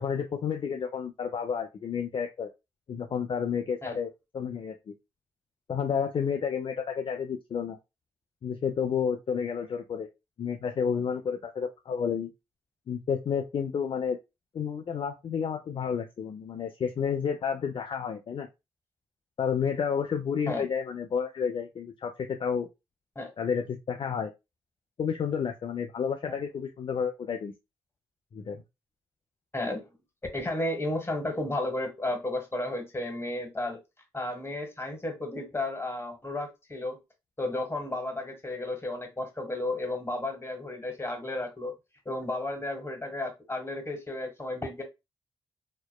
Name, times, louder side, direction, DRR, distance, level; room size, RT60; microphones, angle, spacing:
voice 1, 0.0-2.5 2.9-4.9 5.7-7.8 8.4-10.1 10.4-12.3 12.9-14.2 14.5-18.5 19.4-22.7 23.4-24.3 25.0-27.5 28.3-28.6, left 7 dB, 50° left, 0.4 m, -31 dB
voice 2, 29.5-29.9 30.3-33.8 34.1-37.0 37.4-41.7 42.0-44.8, left 2 dB, 20° left, 1.2 m, -33 dB
2.8 x 2.1 x 2.2 m
hypercardioid pair, 40°, 12 cm